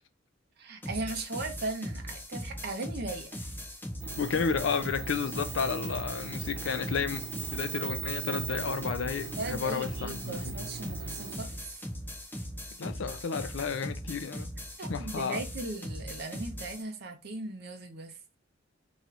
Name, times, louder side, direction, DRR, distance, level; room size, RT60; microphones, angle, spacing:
voice 1, 0.6-3.5 9.4-11.6 14.8-18.2, right 2 dB, 55° right, 0.9 m, -38 dB
sound 1, 0.8-16.8, equal, 10° left, 0.9 m, -40 dB
sound 2, 4.0-11.4, right 5 dB, 80° right, 1.0 m, -39 dB
voice 2, 4.2-10.6 12.8-14.5 14.9-15.4, left 6 dB, 75° left, 0.5 m, -32 dB
3.1 x 3.1 x 3.7 m
head